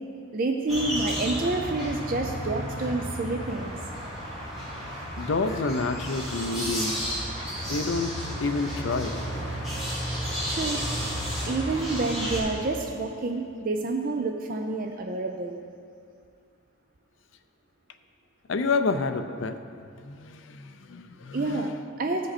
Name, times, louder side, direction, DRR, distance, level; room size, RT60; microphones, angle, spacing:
voice 1, 0.3-3.7 10.5-10.8 11.4-15.6 21.3-22.3, right 2 dB, 45° right, 4 dB, 0.5 m, -28 dB
sound 1, 0.7-12.4, equal, ahead, 2.5 m, -32 dB
voice 2, 5.2-7.1 7.7-9.1 18.5-19.6 20.0-21.7, left 3 dB, 70° left, 8 dB, 0.5 m, -29 dB
15.0 x 5.2 x 4.2 m, 2.3 s
head